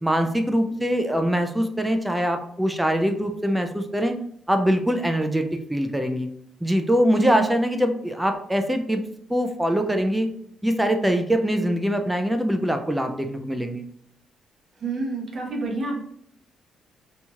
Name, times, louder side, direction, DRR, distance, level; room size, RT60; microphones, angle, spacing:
voice 1, 0.0-4.1 4.5-6.3 6.6-9.0 9.3-10.3 10.6-13.8, equal, 5° right, 6 dB, 0.3 m, -23 dB
voice 2, 7.1-7.5 14.8-16.0, right 3 dB, 50° right, -1 dB, 0.8 m, -28 dB
2.8 x 2.7 x 2.3 m, 0.67 s
cardioid pair, 90°, 0 cm